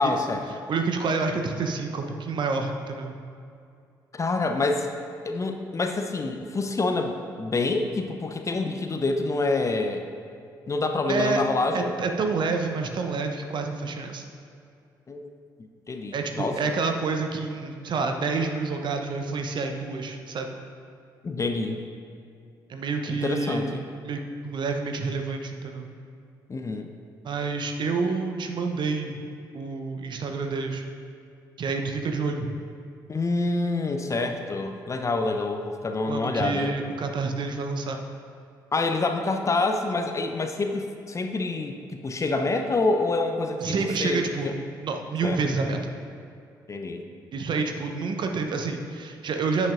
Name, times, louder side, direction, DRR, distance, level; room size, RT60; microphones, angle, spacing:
voice 1, 0.0-0.6 4.1-4.9 5.2-10.0 10.7-11.9 15.1-15.3 15.9-16.6 21.2-21.8 23.1-23.9 26.5-26.9 33.1-36.7 38.7-44.5 45.2-45.4 46.7-47.0, left 3 dB, 30° left, 5 dB, 0.7 m, -27 dB
voice 2, 0.7-3.2 11.1-11.4 11.7-14.2 16.1-20.5 22.7-23.8 24.0-25.9 27.2-29.2 29.5-30.8 31.6-32.5 36.1-38.0 43.6-44.5 44.8-45.8 47.3-49.7, right 4 dB, 45° right, 5 dB, 0.8 m, -28 dB
10.0 x 8.7 x 2.5 m, 2.5 s
figure-of-eight pair, 40°, 11 cm